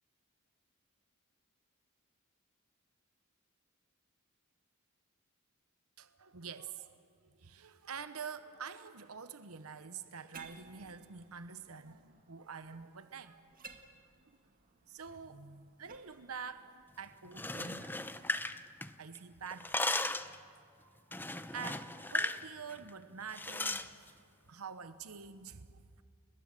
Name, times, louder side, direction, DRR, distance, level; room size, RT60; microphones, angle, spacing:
voice 1, 6.0-7.0 7.4-13.4 14.9-18.1 19.0-19.8 20.8-26.0, right 6 dB, 75° right, 11 dB, 1.0 m, -47 dB
sound 1, 10.3-18.3, right 4 dB, 40° right, 1.8 m, -59 dB
sound 2, 17.3-19.2 19.5-20.4 21.1-22.4 22.7-22.9 23.3-23.9, left 2 dB, 10° left, 0.7 m, -36 dB
30.0 x 20.0 x 7.6 m, 2.2 s
head